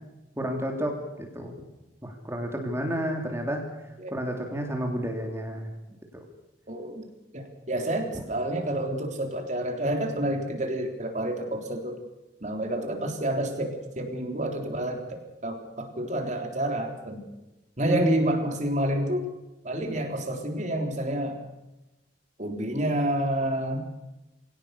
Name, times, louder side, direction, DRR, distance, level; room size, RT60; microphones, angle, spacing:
voice 1, 0.4-1.7 2.0-3.6 4.1-5.7 6.1-6.2 8.1-8.2 17.9-18.0, equal, 15° right, 2 dB, 3.0 m, -31 dB
voice 2, 6.7-7.0 7.3-12.0 12.4-17.2 17.8-19.3 19.6-21.4 22.4-23.8, right 1 dB, 45° right, 4 dB, 3.7 m, -29 dB
24.0 x 17.5 x 6.8 m, 0.99 s
head